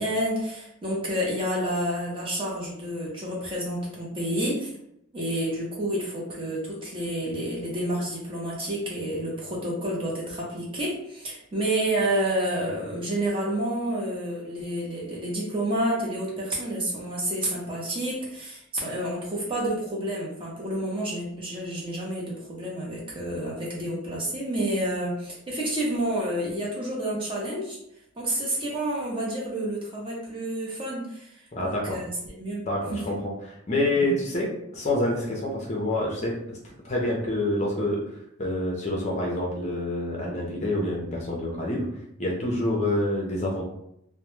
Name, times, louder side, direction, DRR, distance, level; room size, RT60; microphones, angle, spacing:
voice 1, 0.0-4.7 5.1-27.8 28.2-32.6 32.9-33.0 34.0-34.1, right 1 dB, 25° right, -4 dB, 0.6 m, -29 dB
voice 2, 31.5-32.0 32.6-33.2 33.4-38.0 38.4-41.9 42.2-43.6, left 1 dB, 30° left, -2 dB, 0.4 m, -27 dB
2.1 x 2.1 x 3.0 m, 0.78 s
head